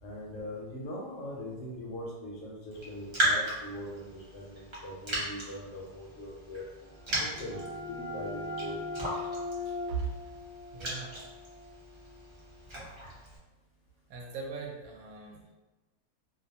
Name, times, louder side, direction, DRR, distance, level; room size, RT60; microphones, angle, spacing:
voice 1, 0.0-6.6 7.2-8.8, left 1 dB, 65° left, -3 dB, 0.9 m, -41 dB
Raindrop, 2.7-13.4, right 1 dB, 50° right, 0.3 m, -37 dB
sound 1, 6.8-12.3, left 2 dB, 10° right, 0.7 m, -40 dB
voice 2, 9.6-10.4 10.7-11.1 12.7-12.8 14.1-15.5, right 5 dB, 75° right, 0 dB, 1.0 m, -39 dB
2.5 x 2.1 x 2.7 m, 1.1 s
omnidirectional pair, 1.5 m